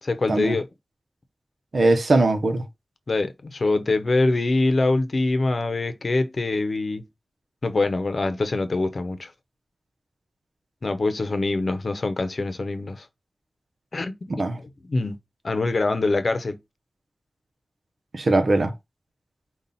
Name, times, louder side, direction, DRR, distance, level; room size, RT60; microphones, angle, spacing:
voice 1, 0.0-0.7 3.1-7.0 7.6-9.3 10.8-13.1 13.9-15.2 15.4-16.6, left 2 dB, 70° left, 0.7 m, -24 dB
voice 2, 1.7-2.6 14.3-14.6 18.1-18.7, right 2 dB, 80° right, 0.8 m, -20 dB
5.4 x 2.4 x 4.1 m
wide cardioid pair, 50°, 0 cm